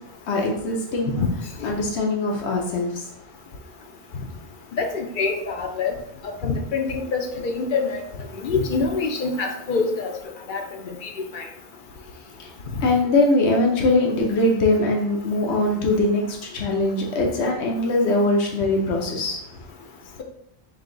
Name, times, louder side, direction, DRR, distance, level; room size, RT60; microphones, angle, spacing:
voice 1, 0.3-1.2 1.6-3.1 12.4-12.5 12.8-19.4, left 2 dB, 80° left, 0 dB, 1.1 m, -22 dB
voice 2, 4.8-5.9 6.4-8.0 8.4-10.1 10.5-10.6 11.0-11.4, left 4 dB, 55° left, 3 dB, 0.7 m, -25 dB
3.8 x 2.7 x 3.8 m, 0.71 s
omnidirectional pair, 1.1 m